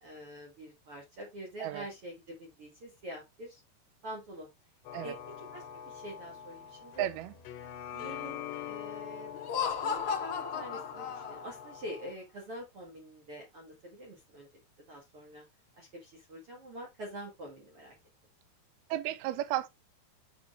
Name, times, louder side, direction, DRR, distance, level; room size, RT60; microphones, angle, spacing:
voice 1, 0.0-3.6 4.0-4.5 5.0-7.1 7.9-9.3 9.8-14.5 14.9-15.4 15.8-17.9, equal, 50° right, 1.9 m, -46 dB
sound 1, 4.9-12.1, left 9 dB, 85° left, 3.2 m, -44 dB
voice 2, 7.0-7.3 18.9-19.7, right 13 dB, 80° right, 2.5 m, -33 dB
Laughter, 9.3-11.7, left 7 dB, 70° left, 1.3 m, -34 dB
8.5 x 5.2 x 3.1 m
omnidirectional pair, 4.8 m